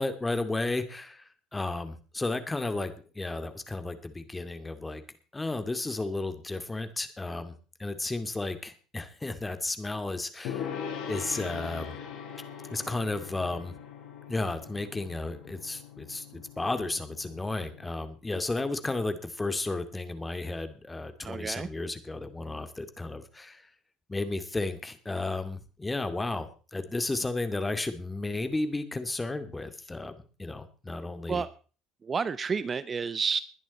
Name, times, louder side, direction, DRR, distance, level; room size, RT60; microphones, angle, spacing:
voice 1, 0.0-5.0 5.3-12.0 12.7-13.7 14.3-23.6 24.1-30.1 30.4-31.4, left 2 dB, 15° left, 9 dB, 2.3 m, -33 dB
Gong, 10.4-17.9, left 8 dB, 70° left, 5.3 m, -41 dB
voice 2, 21.2-21.7 31.3-31.5 32.0-33.4, right 5 dB, 30° right, 15 dB, 0.7 m, -30 dB
21.0 x 10.5 x 4.2 m, 0.38 s
supercardioid pair, 95°, 0 cm